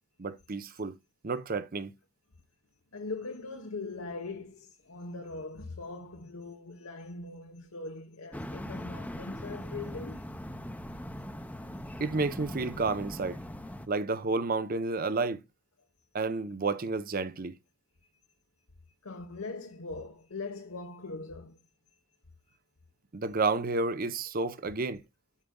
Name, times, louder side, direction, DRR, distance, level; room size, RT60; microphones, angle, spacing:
voice 1, 0.2-1.0 1.2-1.9 12.0-13.4 13.9-15.4 16.1-17.6 23.1-25.0, right 3 dB, 45° right, 0.7 m, -30 dB
voice 2, 2.9-10.3 18.3-18.4 19.0-21.6 21.9-22.1, left 3 dB, 80° left, 1.1 m, -41 dB
sound 1, 8.3-13.9, equal, 5° left, 0.7 m, -40 dB
13.0 x 5.1 x 2.2 m
head